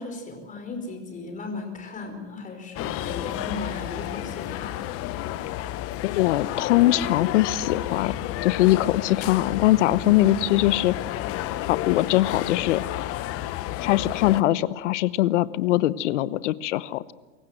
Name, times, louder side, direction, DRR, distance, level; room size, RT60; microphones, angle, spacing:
voice 1, 0.0-4.9, left 3 dB, 20° left, 4 dB, 4.8 m, -36 dB
sound 1, 2.8-14.4, left 13 dB, 40° left, 1.0 m, -31 dB
voice 2, 6.0-8.1 8.4-10.9 11.6-12.8 13.8-17.1, left 15 dB, 75° left, 18 dB, 1.0 m, -22 dB
24.5 x 15.5 x 7.8 m, 1.3 s
supercardioid pair, 130°, 36 cm